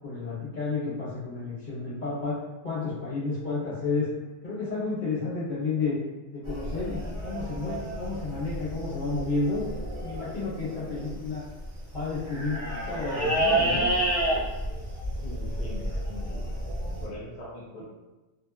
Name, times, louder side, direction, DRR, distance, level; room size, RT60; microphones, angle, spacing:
voice 1, 0.0-4.1 4.4-5.9 6.3-9.6 10.0-11.4 11.9-12.6 12.9-13.8, left 3 dB, 40° left, -10 dB, 1.3 m, -31 dB
sound 1, 6.4-17.0, right 1 dB, 35° right, 0.5 m, -30 dB
voice 2, 15.2-16.5 16.9-17.8, left 1 dB, 60° left, -6 dB, 0.5 m, -42 dB
2.6 x 2.3 x 2.3 m, 1.1 s
omnidirectional pair, 1.3 m